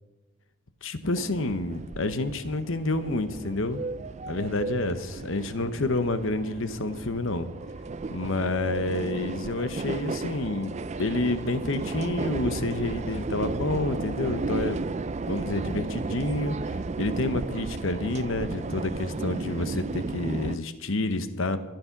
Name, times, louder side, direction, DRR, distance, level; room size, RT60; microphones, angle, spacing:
voice 1, 0.8-3.8 4.3-7.5 8.1-14.8 15.3-21.6, left 2 dB, 60° left, 11 dB, 1.0 m, -29 dB
sound 1, 1.2-20.6, right 3 dB, 30° right, 0.4 m, -34 dB
14.0 x 11.0 x 5.9 m, 1.1 s
head